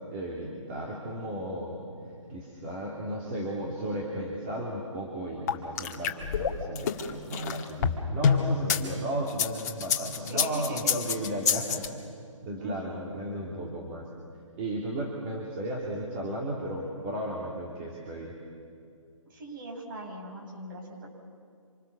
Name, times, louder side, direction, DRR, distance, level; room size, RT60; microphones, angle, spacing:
voice 1, 0.1-1.8 2.3-11.8 12.4-14.1 14.6-18.3, right 1 dB, 20° right, -3 dB, 3.0 m, -34 dB
sound 1, 5.5-8.8 9.3-11.9, left 7 dB, 30° left, 1.8 m, -27 dB
voice 2, 10.2-10.9 12.6-13.2 19.3-21.1, right 1 dB, 40° right, 1 dB, 5.9 m, -40 dB
26.5 x 26.5 x 7.1 m, 2.3 s
hypercardioid pair, 160°, 17 cm